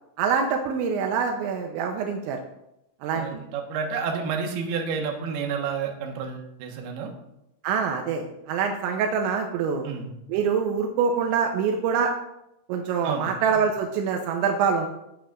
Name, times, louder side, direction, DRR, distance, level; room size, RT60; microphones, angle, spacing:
voice 1, 0.2-2.4 3.0-3.4 7.6-9.9 10.3-12.1 12.7-14.9, right 6 dB, 85° right, 3 dB, 3.0 m, -25 dB
voice 2, 3.1-7.1 9.8-10.1 13.0-13.3, right 6 dB, 65° right, 1 dB, 3.0 m, -30 dB
18.5 x 8.1 x 2.5 m, 0.86 s
omnidirectional pair, 5.4 m